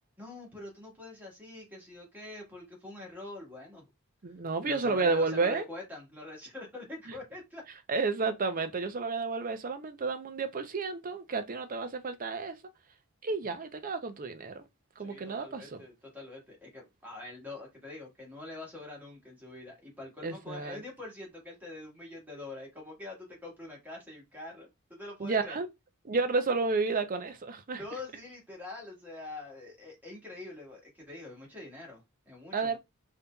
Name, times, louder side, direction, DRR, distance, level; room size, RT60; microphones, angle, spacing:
voice 1, 0.2-3.8 4.6-7.6 15.0-25.6 27.8-32.8, left 2 dB, 10° right, 1.6 m, -45 dB
voice 2, 4.2-5.7 7.9-12.6 13.2-14.6 15.0-15.8 20.2-20.8 25.2-25.7 26.0-27.8 32.5-32.8, right 4 dB, 40° right, 0.5 m, -31 dB
5.2 x 2.7 x 2.3 m
head